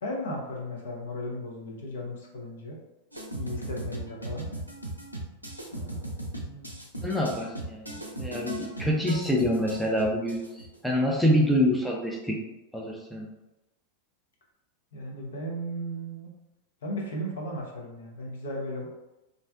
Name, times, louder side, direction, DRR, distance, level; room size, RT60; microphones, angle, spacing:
voice 1, 0.0-2.8 3.3-4.5 5.7-6.1 6.4-6.8 14.9-16.3 16.8-18.9, equal, 65° left, -1 dB, 0.6 m, -36 dB
sound 1, 3.1-10.8, right 1 dB, 90° right, 0.3 m, -37 dB
voice 2, 7.0-12.4 12.7-13.3, equal, 5° left, -2 dB, 0.4 m, -26 dB
2.5 x 2.0 x 2.4 m, 0.96 s
figure-of-eight pair, 90°, 0 cm